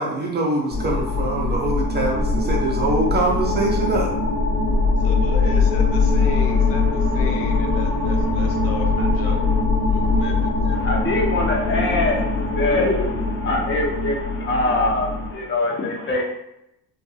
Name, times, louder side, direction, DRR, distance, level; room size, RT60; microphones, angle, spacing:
voice 1, 0.0-4.1, right 2 dB, 25° right, -1 dB, 0.5 m, -23 dB
sound 1, 0.7-15.3, left 3 dB, 55° left, 1.0 m, -21 dB
voice 2, 5.0-9.4 9.8-10.8, left 4 dB, 75° left, 3 dB, 0.6 m, -35 dB
voice 3, 6.3-8.5 9.0-9.1 10.7-16.2, left 2 dB, 30° left, -1 dB, 0.7 m, -25 dB
2.6 x 2.3 x 2.7 m, 0.82 s
cardioid pair, 105°, 42 cm